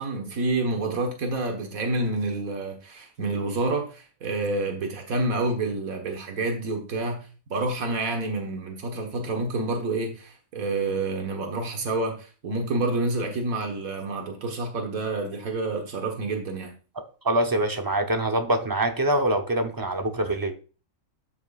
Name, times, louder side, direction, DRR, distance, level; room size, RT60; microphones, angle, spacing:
voice 1, 0.0-16.7, right 2 dB, 90° right, 2 dB, 1.8 m, -28 dB
voice 2, 17.0-20.5, right 1 dB, 20° right, 6 dB, 0.6 m, -25 dB
12.5 x 5.9 x 2.4 m, 0.35 s
omnidirectional pair, 1.4 m